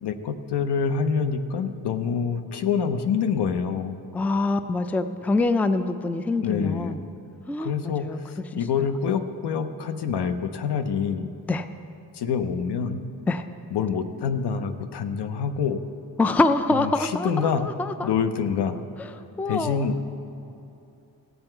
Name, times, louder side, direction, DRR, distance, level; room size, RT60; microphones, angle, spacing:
voice 1, 0.0-4.0 6.4-7.0 7.6-11.3 12.1-13.2 13.7-15.8 16.8-17.7 18.0-18.8 19.5-20.1, left 6 dB, 85° left, 9 dB, 0.7 m, -26 dB
voice 2, 4.1-7.0 7.5-8.2 8.5-8.6 11.5-11.7 13.3-13.5 16.2-18.1 19.0-19.1 19.4-19.9, left 2 dB, 5° left, 10 dB, 0.3 m, -25 dB
17.0 x 7.9 x 4.5 m, 2.8 s
cardioid pair, 105°, 39 cm